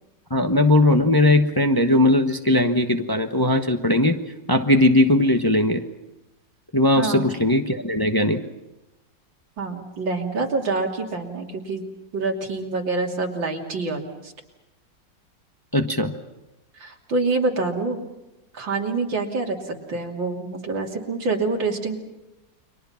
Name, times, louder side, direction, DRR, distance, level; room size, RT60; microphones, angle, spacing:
voice 1, 0.3-4.2 4.5-5.8 6.7-8.4 15.7-16.1, left 1 dB, 15° left, 5 dB, 1.0 m, -19 dB
voice 2, 7.0-7.3 9.6-11.8 12.1-14.3 16.8-18.0 18.5-22.0, right 3 dB, 85° right, 1 dB, 3.6 m, -26 dB
30.0 x 23.5 x 5.8 m, 0.98 s
omnidirectional pair, 2.0 m